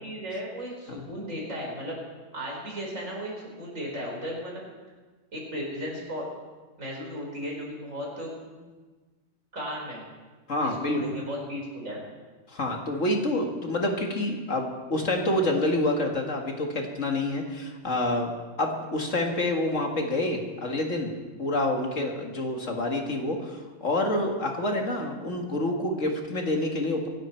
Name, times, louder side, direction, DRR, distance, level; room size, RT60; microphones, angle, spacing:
voice 1, 0.0-2.0 2.3-4.7 5.3-6.3 6.8-8.3 9.5-10.0 10.6-12.0, equal, 55° right, -2 dB, 5.0 m, -35 dB
voice 2, 10.5-11.0 12.5-18.3 18.6-21.1 21.4-27.1, left 1 dB, 55° left, 2 dB, 2.1 m, -27 dB
24.5 x 11.5 x 4.5 m, 1.3 s
omnidirectional pair, 1.6 m